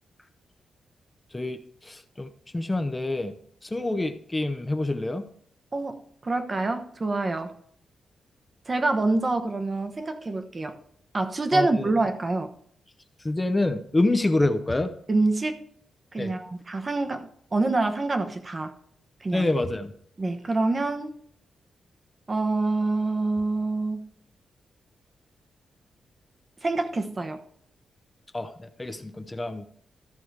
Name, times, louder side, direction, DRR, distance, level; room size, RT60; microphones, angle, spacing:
voice 1, 1.3-3.4 3.6-5.3 11.5-11.9 13.2-14.9 16.2-16.3 19.3-19.9 28.3-29.7, left 2 dB, 15° left, 9 dB, 0.7 m, -27 dB
voice 2, 5.7-7.5 8.7-10.8 11.1-12.5 15.1-15.6 16.1-18.7 19.2-19.5 20.2-21.1 22.3-24.1 26.6-27.4, right 2 dB, 25° right, 7 dB, 0.9 m, -26 dB
14.0 x 4.9 x 4.7 m, 0.63 s
wide cardioid pair, 135°, 0 cm